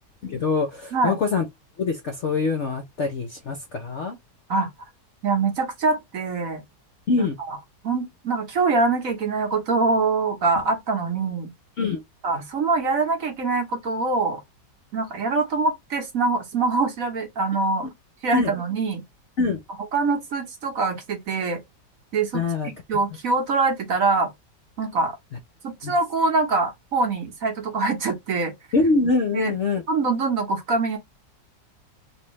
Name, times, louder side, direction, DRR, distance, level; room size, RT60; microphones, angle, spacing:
voice 1, 0.2-1.4 1.8-4.2 7.1-7.4 11.8-12.0 18.3-18.5 19.4-19.6 22.3-22.7 25.8-25.9 28.7-29.8, left 4 dB, 60° left, 0.7 m, -24 dB
voice 2, 5.2-6.6 7.2-7.6 7.8-11.5 12.2-14.4 14.9-17.9 18.2-19.0 19.9-21.6 22.1-24.3 24.8-25.1 25.6-28.5 29.3-29.5 29.9-31.0, right 3 dB, 55° right, 1.3 m, -24 dB
3.5 x 2.7 x 2.9 m
omnidirectional pair, 1.9 m